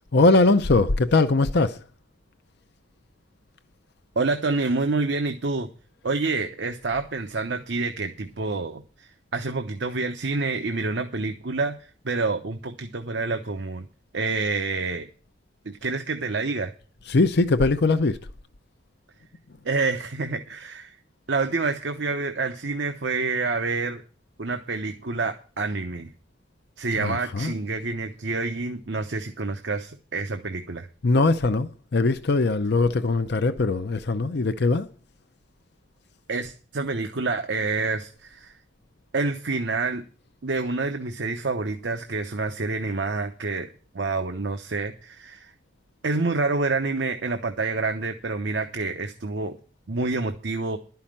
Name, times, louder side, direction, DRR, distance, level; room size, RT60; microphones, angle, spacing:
voice 1, 0.1-1.8 17.0-18.2 26.9-27.5 31.0-34.9, left 3 dB, 65° left, 0.6 m, -21 dB
voice 2, 4.2-5.7 6.0-11.7 12.0-13.8 14.1-15.1 15.6-16.7 19.6-21.0 21.3-24.0 24.4-26.1 26.8-30.9 36.3-38.5 39.1-40.0 40.4-43.7 43.9-45.5 46.0-49.6 49.9-50.8, right 3 dB, 70° right, 0.9 m, -28 dB
12.0 x 5.7 x 8.7 m
head